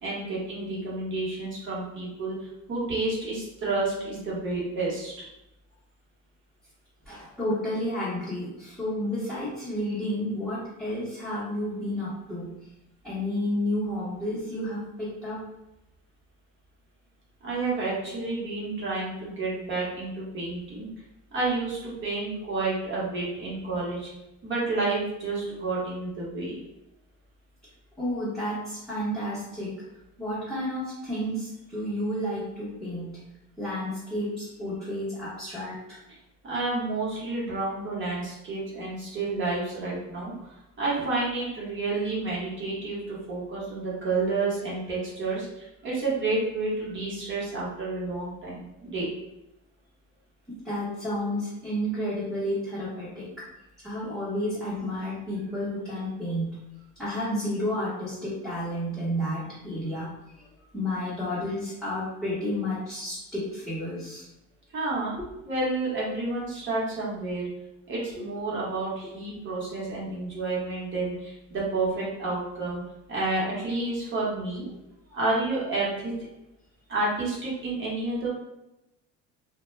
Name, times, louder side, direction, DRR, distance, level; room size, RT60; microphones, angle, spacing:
voice 1, 0.0-5.1 17.4-20.9 21.3-24.1 24.4-26.6 36.4-40.5 40.8-49.1 64.7-65.2 65.4-67.5 67.9-72.8 73.1-74.7 75.1-76.3 76.9-78.3, right 3 dB, 35° right, -6 dB, 1.0 m, -30 dB
voice 2, 7.1-12.6 13.0-15.4 28.0-29.8 30.2-33.2 33.6-36.0 50.6-53.5 53.8-56.6 57.0-64.3 65.9-66.0 68.1-68.2, left 1 dB, ahead, -13 dB, 0.8 m, -31 dB
2.2 x 2.1 x 3.1 m, 0.91 s
cardioid pair, 145°, 33 cm